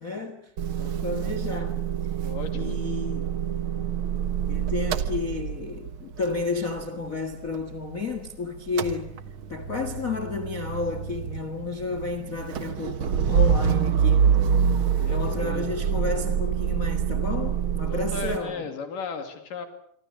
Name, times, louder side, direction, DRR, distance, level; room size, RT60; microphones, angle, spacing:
voice 1, 0.0-0.5 0.8-1.8 2.5-3.3 4.5-9.2 9.5-14.3 15.1-18.7, left 3 dB, 35° left, 1.3 m, -32 dB
Motor vehicle (road) / Engine starting / Idling, 0.6-8.3 8.5-18.4, right 7 dB, 60° right, 1.4 m, -26 dB
voice 2, 2.2-2.8 15.0-15.6 17.9-19.7, left 5 dB, 70° left, 4.1 m, -36 dB
27.0 x 24.0 x 6.7 m
omnidirectional pair, 4.0 m